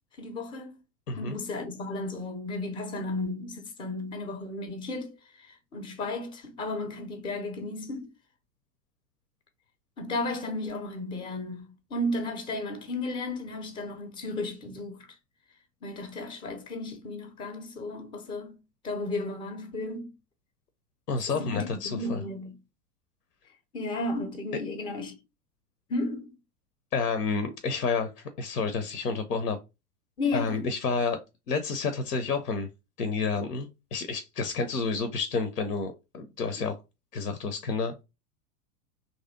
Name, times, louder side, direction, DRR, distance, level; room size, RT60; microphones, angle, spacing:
voice 1, 0.2-0.8 1.2-8.1 10.0-15.1 15.8-18.6 18.8-20.1 21.3-22.5 23.7-25.2 25.9-26.3 30.2-30.6 36.5-36.6, left 2 dB, 10° left, 0.4 m, -34 dB
voice 2, 21.1-22.2 26.9-29.6 30.3-31.2 31.5-32.7 33.0-36.8 37.1-38.0, left 4 dB, 80° left, 0.6 m, -30 dB
3.0 x 2.7 x 3.7 m
figure-of-eight pair, 95°, 46 cm